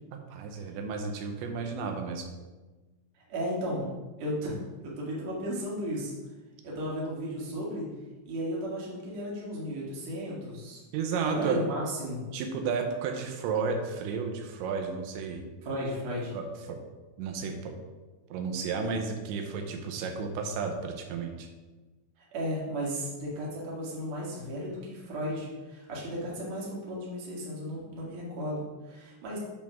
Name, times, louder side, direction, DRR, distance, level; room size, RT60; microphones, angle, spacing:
voice 1, 0.1-2.3 10.9-11.6 12.3-15.4 16.3-16.8 17.2-17.7 18.3-21.5, right 5 dB, 85° right, 4 dB, 3.1 m, -32 dB
voice 2, 3.3-3.9 4.2-6.1 6.6-7.9 8.2-10.8 11.3-12.2 15.6-16.3 22.3-29.4, equal, 50° right, -5 dB, 2.6 m, -34 dB
8.7 x 3.6 x 6.0 m, 1.2 s
omnidirectional pair, 5.0 m